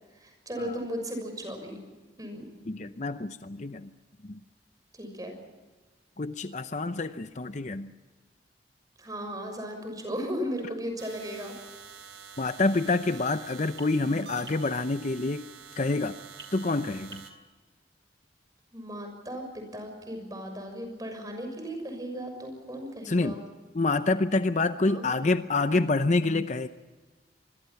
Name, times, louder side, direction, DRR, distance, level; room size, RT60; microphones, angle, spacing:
voice 1, 0.2-1.8 2.2-2.5 4.9-5.4 9.0-11.5 18.7-23.4 24.8-25.0, equal, 20° right, 4 dB, 6.4 m, -36 dB
voice 2, 2.7-3.9 4.2-4.4 6.2-7.9 12.4-15.5 15.8-16.2 16.5-17.2 23.0-23.4 23.7-26.7, left 3 dB, 40° left, 11 dB, 0.7 m, -27 dB
sound 1, 11.0-17.3, right 6 dB, 85° right, 3.3 m, -47 dB
26.0 x 22.0 x 5.8 m, 1.3 s
head